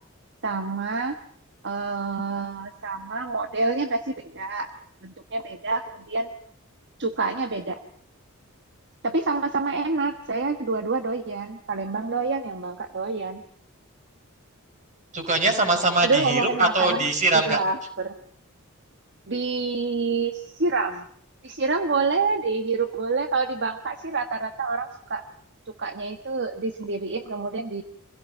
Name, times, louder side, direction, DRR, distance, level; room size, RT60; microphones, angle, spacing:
voice 1, 0.4-1.2 1.6-4.7 5.0-6.3 7.0-7.8 9.0-13.4 16.0-17.0 17.4-18.1 19.3-21.0 21.4-25.2 25.8-27.8, right 4 dB, 55° right, 7 dB, 1.3 m, -27 dB
voice 2, 15.1-17.6, right 2 dB, 35° right, 6 dB, 4.7 m, -22 dB
26.0 x 16.5 x 7.5 m, 0.65 s
head